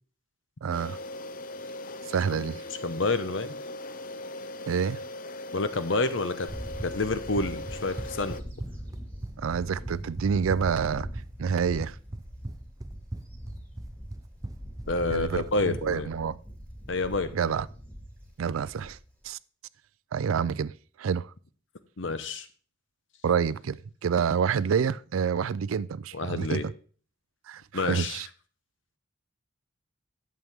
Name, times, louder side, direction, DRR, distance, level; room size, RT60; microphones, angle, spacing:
voice 1, 0.6-1.0 2.0-2.6 4.7-5.0 9.4-11.1 11.4-12.0 15.1-16.4 17.3-17.7 18.4-19.0 19.2-19.4 20.1-21.3 23.2-26.6 27.5-28.3, right 6 dB, 90° right, 0.4 m, -28 dB
sound 1, 0.7-8.4, left 2 dB, 45° left, 0.5 m, -39 dB
voice 2, 2.8-3.5 5.5-6.5 6.8-8.4 14.9-16.1 16.9-17.3 22.0-22.5 26.1-26.7 27.7-28.2, left 3 dB, 65° left, 0.9 m, -28 dB
Bird / Wind, 6.5-19.3, equal, 5° left, 2.7 m, -42 dB
Run, 6.5-15.9, right 1 dB, 20° right, 0.4 m, -40 dB
11.0 x 7.6 x 3.6 m
head